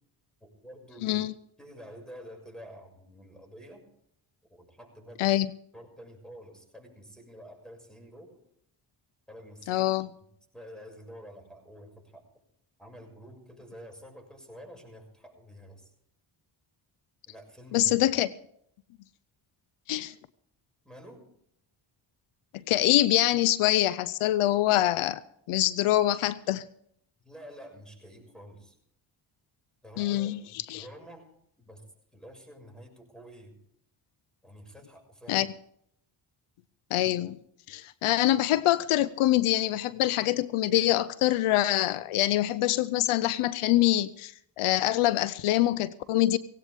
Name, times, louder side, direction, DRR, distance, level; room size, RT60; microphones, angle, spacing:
voice 1, 0.4-1.2 1.6-3.8 4.5-5.3 5.7-8.4 9.3-9.9 10.5-12.2 12.8-15.9 17.3-18.0 20.8-21.3 27.2-28.8 29.8-31.3 31.6-31.8 32.1-33.6 34.4-35.4, equal, ahead, 3 dB, 6.2 m, -48 dB
voice 2, 1.0-1.3 5.2-5.5 9.7-10.1 17.7-18.3 19.9-20.1 22.7-25.2 25.5-26.6 30.0-30.4 30.7-30.8 35.3-35.5 36.9-37.4 37.7-46.4, left 14 dB, 80° left, 18 dB, 0.6 m, -25 dB
17.5 x 16.5 x 3.5 m, 0.71 s
supercardioid pair, 55°, 49 cm